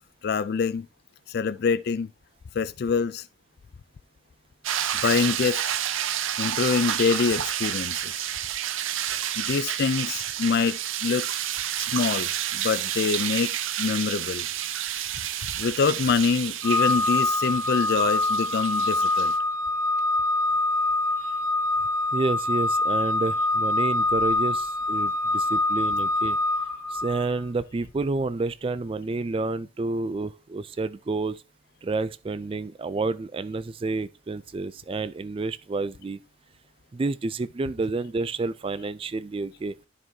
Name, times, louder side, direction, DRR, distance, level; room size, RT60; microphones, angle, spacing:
voice 1, 0.2-0.9 1.3-2.1 2.5-3.3 5.0-5.8 6.4-8.3 9.4-11.2 11.8-14.5 15.5-19.3, left 5 dB, 50° left, 0.4 m, -25 dB
sound 1, 4.6-19.4, right 11 dB, 80° right, 0.6 m, -30 dB
Organ, 16.6-27.4, left 2 dB, 10° left, 1.2 m, -25 dB
voice 2, 22.1-26.4 26.9-31.4 31.8-36.2 36.9-39.7, right 3 dB, 25° right, 0.3 m, -29 dB
12.5 x 4.6 x 2.7 m
head